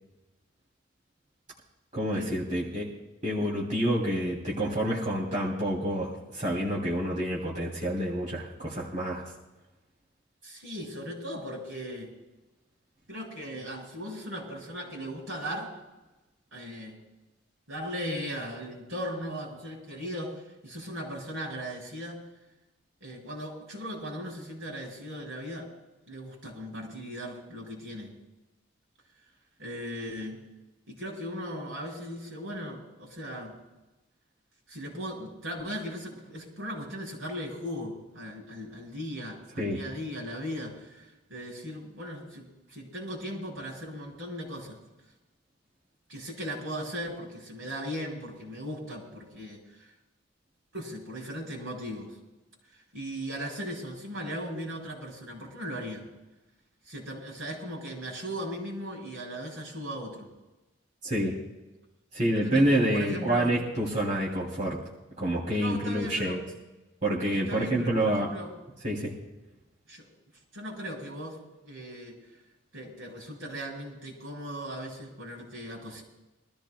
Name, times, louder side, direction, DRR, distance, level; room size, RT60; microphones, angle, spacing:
voice 1, 1.9-2.9 3.2-9.2 39.6-39.8 61.0-61.4 62.1-64.8 65.2-66.4 67.0-68.3 68.8-69.1, right 1 dB, 40° right, -5 dB, 2.9 m, -28 dB
voice 2, 10.4-12.1 13.1-15.7 16.5-17.0 17.7-22.2 23.0-25.7 26.1-28.1 29.6-30.4 30.9-33.6 34.7-44.8 46.1-49.9 50.7-52.1 52.9-56.1 56.9-60.3 62.3-63.5 65.6-66.4 67.3-68.5 69.9-70.1 70.5-71.4 71.6-72.2 72.7-76.0, equal, 80° right, -1 dB, 5.3 m, -38 dB
24.5 x 14.0 x 2.3 m, 1.0 s
head